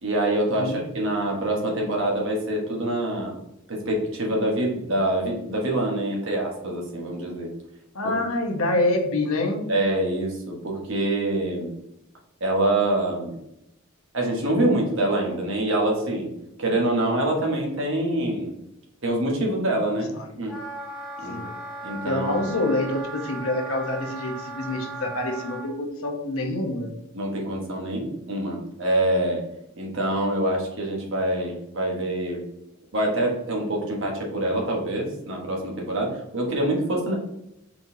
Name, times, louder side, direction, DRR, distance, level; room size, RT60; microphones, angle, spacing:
voice 1, 0.0-3.3 3.7-7.5 9.7-11.7 12.4-13.4 14.1-16.3 16.6-18.5 19.0-20.1 20.4-20.6 21.2-21.4 21.8-22.4 27.1-29.4 29.8-32.4 32.9-37.1, right 1 dB, 65° right, -1 dB, 1.1 m, -25 dB
voice 2, 7.9-9.7 20.2-20.3 21.3-21.5 22.0-26.9, left 2 dB, 80° left, 2 dB, 0.9 m, -26 dB
Wind instrument woodwind instrument, 20.5-25.7, right 2 dB, 5° right, 0.8 m, -37 dB
4.5 x 3.8 x 2.7 m, 0.83 s
head